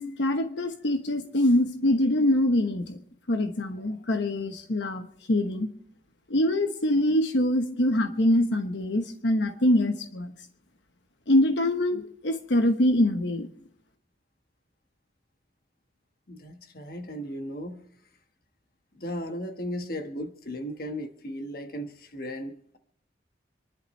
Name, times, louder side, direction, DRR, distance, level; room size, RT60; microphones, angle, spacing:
voice 1, 0.0-3.0 3.3-5.7 6.3-10.3 11.3-13.5, left 1 dB, 75° left, 1.1 m, -24 dB
voice 2, 16.3-17.8 18.9-22.8, equal, 50° left, 1.4 m, -36 dB
26.5 x 11.5 x 3.2 m
head